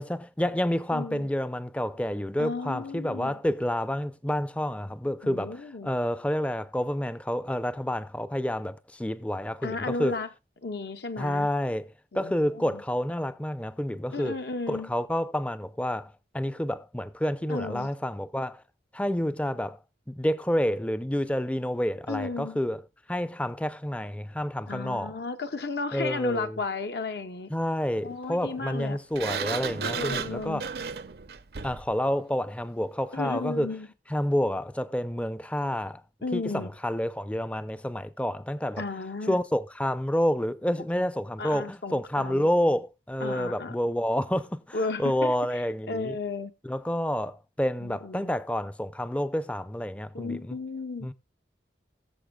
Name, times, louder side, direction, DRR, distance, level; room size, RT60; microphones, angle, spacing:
voice 1, 0.0-10.2 11.2-14.4 14.7-18.6 18.9-19.8 20.1-22.8 23.1-25.2 25.9-26.6 27.5-30.7 31.6-33.7 34.1-36.0 36.3-38.8 39.3-46.2 46.6-50.6 51.0-51.1, equal, 5° left, 0.4 m, -29 dB
voice 2, 0.9-1.3 2.4-3.4 5.2-5.9 9.6-10.3 10.6-11.5 12.1-12.8 14.1-14.9 17.5-17.9 22.1-22.6 24.7-27.5 28.0-29.0 29.8-30.6 33.1-33.9 36.2-36.7 38.8-39.4 41.4-42.5 43.2-43.7 44.7-46.5 47.8-48.3 50.1-51.1, left 3 dB, 70° left, 0.8 m, -34 dB
Sliding door, 29.1-31.9, right 6 dB, 60° right, 0.6 m, -33 dB
20.5 x 7.0 x 2.3 m
head